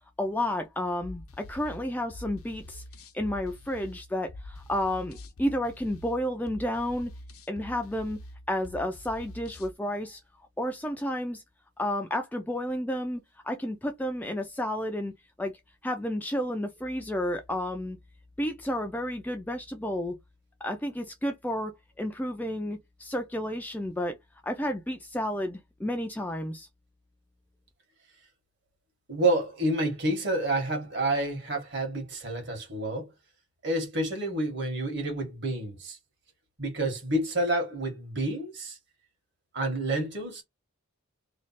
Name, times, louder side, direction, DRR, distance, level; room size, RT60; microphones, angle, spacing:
voice 1, 0.2-2.8 3.1-7.1 7.5-8.2 8.5-10.2 10.6-11.4 11.8-15.1 15.4-15.5 15.8-18.0 18.4-20.1 20.6-21.7 22.0-24.2 24.4-26.7, left 1 dB, 10° left, 0.3 m, -31 dB
sound 1, 1.0-9.7, left 1 dB, 85° left, 0.8 m, -46 dB
voice 2, 29.1-33.1 33.6-36.0 36.6-38.8 39.5-40.4, right 1 dB, 50° right, 1.5 m, -29 dB
3.2 x 2.4 x 4.0 m
head